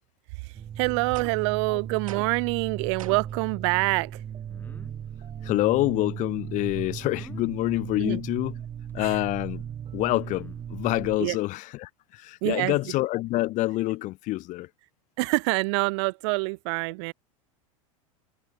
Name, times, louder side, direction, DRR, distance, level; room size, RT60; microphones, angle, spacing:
voice 1, 0.4-4.2 8.0-8.2 9.0-9.1 11.2-11.4 12.4-12.8 15.2-17.1, right 29 dB, 60° right, 0.4 m, -26 dB
sound 1, 0.5-11.2, right 9 dB, 30° right, 3.0 m, -37 dB
sound 2, 1.1-1.6 2.1-2.5 3.0-3.4, right 11 dB, 80° right, 1.4 m, -43 dB
Hmm Ahh, 4.5-4.9 7.1-7.5 8.9-9.0 10.1-10.7, left 3 dB, 10° left, 1.8 m, -49 dB
voice 2, 5.4-8.5 8.9-9.6 9.9-14.7, left 18 dB, 45° left, 1.4 m, -27 dB
hypercardioid pair, 95°, 17 cm